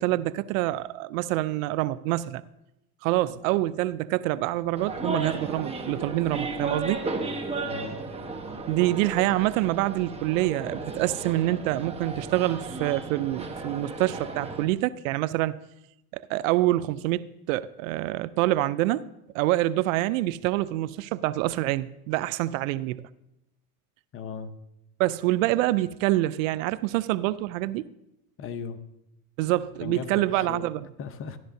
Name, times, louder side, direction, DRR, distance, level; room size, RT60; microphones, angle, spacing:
voice 1, 0.0-2.4 3.0-7.0 8.7-15.6 16.1-19.0 19.3-23.1 25.0-27.9 29.4-30.8, right 16 dB, 60° right, 0.5 m, -26 dB
sound 1, 4.8-14.7, right 3 dB, 15° right, 1.1 m, -34 dB
voice 2, 7.7-8.0 24.1-24.5 28.4-28.8 29.8-30.7 31.0-31.4, left 6 dB, 30° left, 0.8 m, -37 dB
13.5 x 11.0 x 2.7 m
supercardioid pair, 115°, 45 cm